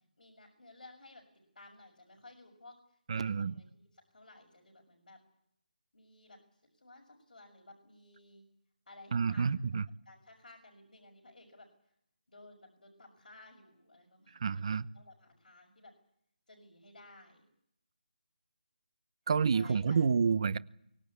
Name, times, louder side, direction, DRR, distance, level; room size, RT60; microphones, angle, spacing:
voice 1, 0.2-1.2 1.5-3.7 3.9-5.2 5.9-8.5 8.9-9.5 10.1-11.7 12.3-15.9 16.5-17.5 19.5-20.1, left 2 dB, 85° left, 6.2 m, -56 dB
voice 2, 3.1-3.6 9.1-9.8 14.4-14.9 19.3-20.6, right 5 dB, 40° right, 0.9 m, -29 dB
24.0 x 18.5 x 8.5 m
figure-of-eight pair, 165°, 5 cm